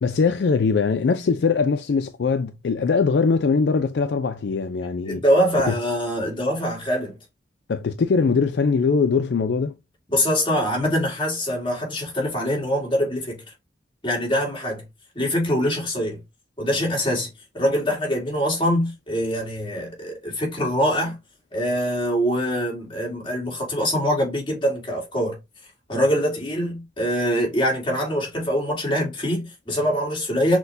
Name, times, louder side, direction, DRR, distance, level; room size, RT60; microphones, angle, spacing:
voice 1, 0.0-5.2 5.7-5.8 7.7-9.8, left 5 dB, 65° left, 0.4 m, -21 dB
voice 2, 5.1-7.1 10.1-13.4 14.0-14.8 15.2-16.2 16.6-17.3 17.5-21.2 21.5-25.4 25.9-30.6, equal, 25° left, 1.8 m, -23 dB
6.1 x 2.2 x 2.6 m
head